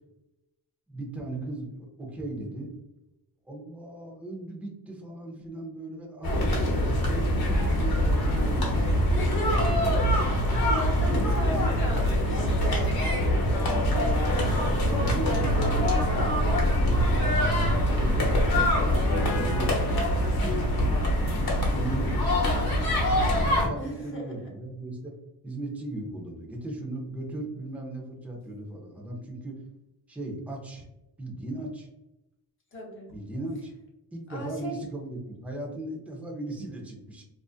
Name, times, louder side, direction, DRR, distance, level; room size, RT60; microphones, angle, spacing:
voice 1, 0.9-2.7 3.5-9.2 11.0-11.7 14.3-15.9 17.5-18.4 19.0-23.1 23.5-25.1 25.4-29.6 30.1-30.9 31.2-31.9 33.1-33.7 34.1-37.3, right 1 dB, 5° right, -1 dB, 0.5 m, -37 dB
sound 1, 6.2-23.7, equal, 70° left, 0.9 m, -24 dB
voice 2, 9.1-12.5 13.3-15.7 16.1-16.6 23.7-24.5 32.7-33.1 34.3-34.8, equal, 30° left, -2 dB, 0.8 m, -37 dB
2.5 x 2.4 x 2.3 m, 0.94 s
wide cardioid pair, 125°, 39 cm